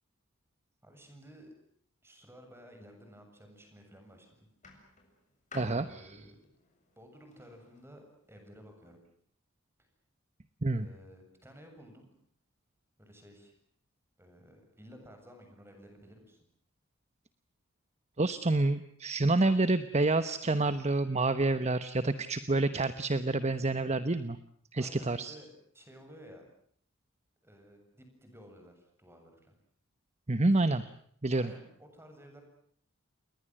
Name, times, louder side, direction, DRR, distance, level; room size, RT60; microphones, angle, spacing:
voice 1, 0.8-1.5 2.0-4.5 5.7-6.4 7.0-9.0 10.7-12.1 13.0-13.5 14.2-16.5 24.7-26.4 27.4-29.5 31.4-32.4, equal, 10° right, 5 dB, 7.6 m, -54 dB
sound 1, 3.6-4.0 4.6-7.9 8.7-8.8, left 2 dB, 35° left, 7.3 m, -52 dB
voice 2, 5.5-5.8 10.6-10.9 18.2-24.4 24.7-25.3 30.3-30.8 31.2-31.5, right 2 dB, 30° right, 12 dB, 1.1 m, -28 dB
29.5 x 21.5 x 7.8 m, 0.63 s
head